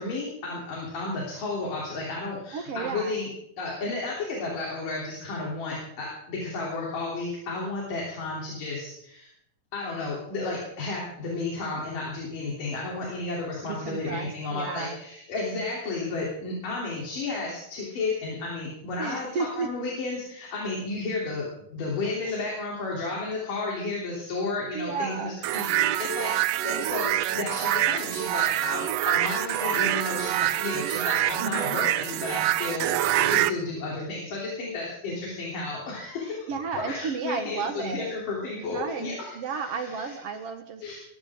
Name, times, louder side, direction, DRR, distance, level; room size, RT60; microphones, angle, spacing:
voice 1, 0.0-3.3 3.6-9.3 9.7-21.5 21.7-26.3 26.6-36.4 36.9-39.1 39.5-40.1 40.8-41.0, left 3 dB, 85° left, -3 dB, 4.9 m, -32 dB
voice 2, 2.5-3.2 13.7-15.0 19.0-19.7 22.2-22.5 24.7-25.3 31.4-31.8 36.5-38.1 38.6-40.8, right 5 dB, 60° right, 7 dB, 2.0 m, -33 dB
sound 1, 25.4-33.5, right 13 dB, 80° right, 1.4 m, -26 dB
20.5 x 16.5 x 3.7 m, 0.73 s
omnidirectional pair, 3.7 m